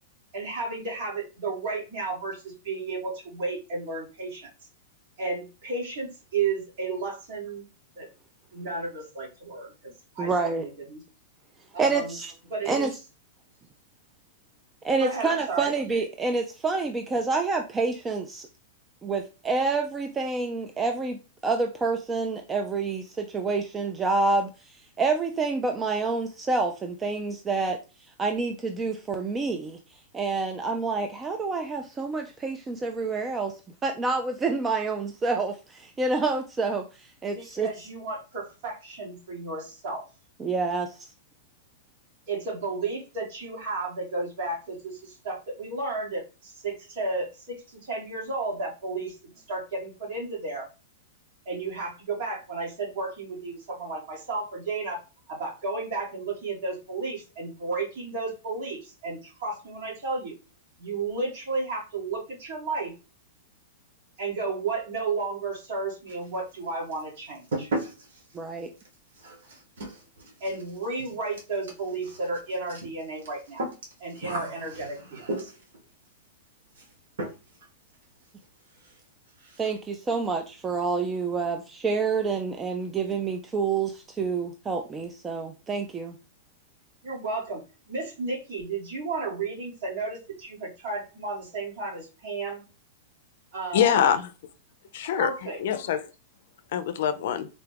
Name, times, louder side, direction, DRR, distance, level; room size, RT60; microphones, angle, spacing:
voice 1, 0.3-4.5 5.2-7.6 8.0-8.1 8.5-11.0 11.7-12.2 12.5-13.1 15.0-15.8 37.3-40.0 42.3-50.7 51.5-55.0 55.3-60.3 60.8-62.9 64.2-67.7 70.4-73.7 74.0-75.5 87.0-87.6 87.9-92.6 93.5-94.2 95.0-95.6, right 3 dB, 55° right, -2 dB, 1.8 m, -33 dB
voice 2, 10.2-10.7 11.8-12.3 12.7-12.9 14.8-18.5 19.0-29.8 30.1-37.7 40.4-41.1 68.3-68.7 79.6-86.2, right 4 dB, 15° right, 5 dB, 0.3 m, -28 dB
sound 1, 66.1-66.6 66.9-75.8 76.7-76.9 77.2-77.7 77.9-78.0 78.4-78.5 78.8-79.0 79.3-79.8, right 2 dB, 80° right, 1.3 m, -37 dB
voice 3, 93.7-94.3 94.9-95.3 95.6-96.1 96.7-97.5, left 9 dB, 65° left, 10 dB, 0.5 m, -24 dB
3.9 x 2.3 x 3.3 m, 0.31 s
hypercardioid pair, 140°, 0 cm